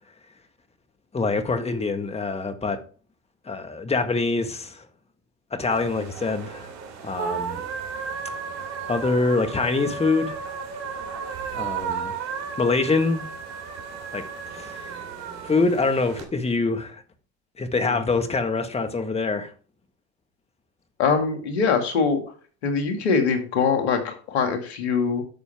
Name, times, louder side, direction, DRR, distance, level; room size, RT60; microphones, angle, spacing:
voice 1, 1.1-2.8 3.5-4.8 5.5-6.7 7.0-7.6 8.9-10.4 11.5-12.1 12.6-13.2 14.1-14.2 14.5-14.9 15.4-17.0 17.6-19.5, left 3 dB, 20° left, 1.6 m, -25 dB
sound 1, 5.7-16.2, right 6 dB, 55° right, 2.7 m, -34 dB
voice 2, 21.0-22.2 22.6-25.2, left 5 dB, 80° left, 2.4 m, -23 dB
10.5 x 6.7 x 3.6 m
hypercardioid pair, 80°, 33 cm